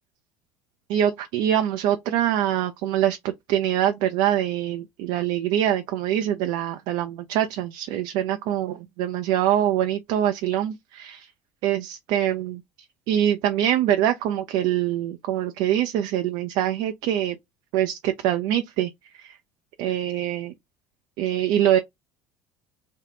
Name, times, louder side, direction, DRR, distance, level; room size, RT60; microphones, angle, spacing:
voice 1, 0.9-11.3 11.6-12.6 13.1-17.4 17.7-18.9 19.2-19.4 19.8-20.5 21.2-21.8, right 11 dB, 65° right, 0.5 m, -24 dB
3.5 x 2.1 x 3.7 m
hypercardioid pair, 75°, 8 cm